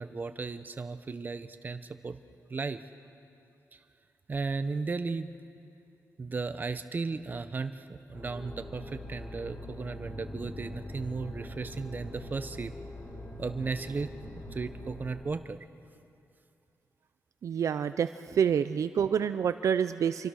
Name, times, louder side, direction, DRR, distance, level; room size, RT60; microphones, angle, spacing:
voice 1, 0.0-2.2 2.5-2.8 3.7-3.8 4.3-5.3 6.2-12.7 13.4-14.1 14.5-15.6 18.3-18.4, right 4 dB, 30° right, 10 dB, 0.9 m, -35 dB
sound 1, 8.1-15.3, left 1 dB, 35° left, 6.6 m, -43 dB
voice 2, 17.4-18.1 18.3-20.3, right 8 dB, 60° right, 11 dB, 0.5 m, -27 dB
27.0 x 24.0 x 6.4 m, 2.6 s
wide cardioid pair, 145°, 6 cm